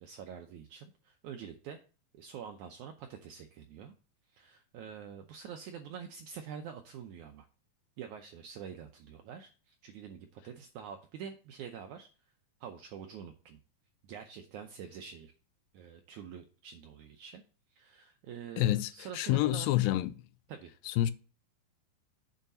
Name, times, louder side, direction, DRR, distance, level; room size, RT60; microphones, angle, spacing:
voice 1, 0.0-1.8 2.1-3.9 4.3-7.5 8.0-12.1 12.6-13.6 14.1-15.3 15.7-17.4 17.7-19.7 20.5-20.7, right 7 dB, 90° right, 1.7 m, -46 dB
voice 2, 18.6-20.1 20.9-21.1, left 14 dB, 80° left, 2.1 m, -28 dB
7.9 x 4.9 x 5.5 m
omnidirectional pair, 4.3 m